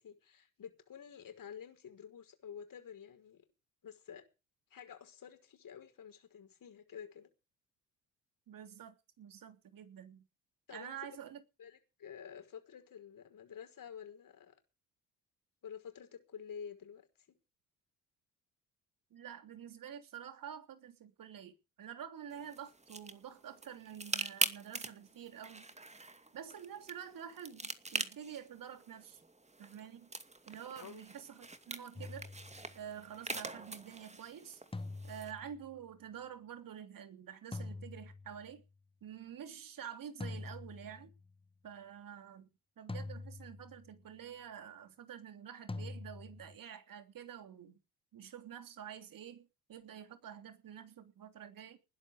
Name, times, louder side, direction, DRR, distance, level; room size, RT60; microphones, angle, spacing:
voice 1, 0.0-3.4 3.8-4.2 4.7-7.3 10.7-11.2 11.6-14.5 15.6-17.4 30.8-31.0, left 7 dB, 55° left, 5.5 m, -50 dB
voice 2, 8.5-10.2 10.7-11.4 19.1-25.7 26.3-29.2 29.6-30.1 30.5-32.3 32.7-34.6 35.0-38.6 39.0-41.1 41.6-42.5 42.8-47.8 48.1-51.8, right 9 dB, 55° right, 3.2 m, -48 dB
sound 1, 22.3-35.3, right 2 dB, 15° right, 2.3 m, -43 dB
sound 2, 32.0-33.0 34.7-35.9 37.5-38.7 40.2-41.4 42.9-44.0 45.7-46.6, left 2 dB, 15° left, 1.2 m, -45 dB
20.0 x 11.0 x 5.1 m
hypercardioid pair, 55°, 40 cm